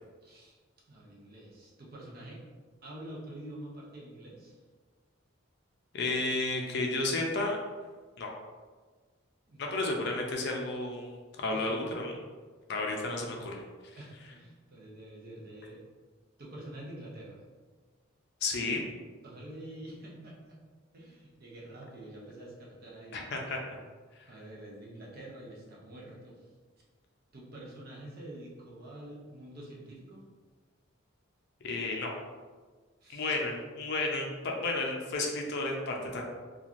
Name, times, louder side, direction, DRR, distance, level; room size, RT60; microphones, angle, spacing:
voice 1, 0.2-0.6 0.9-2.4 2.8-4.6 9.5-9.6 11.5-11.7 14.0-15.8 16.4-17.4 19.2-20.6 20.9-23.2 24.3-26.5 27.3-30.2 33.0-33.4, right 1 dB, 45° right, -4 dB, 0.6 m, -47 dB
voice 2, 5.9-7.6 8.2-8.3 9.6-12.1 12.7-13.6 18.4-18.8 23.1-23.8 31.6-32.1 33.1-36.2, left 2 dB, 55° left, 0 dB, 0.4 m, -32 dB
3.1 x 2.4 x 2.5 m, 1.4 s
head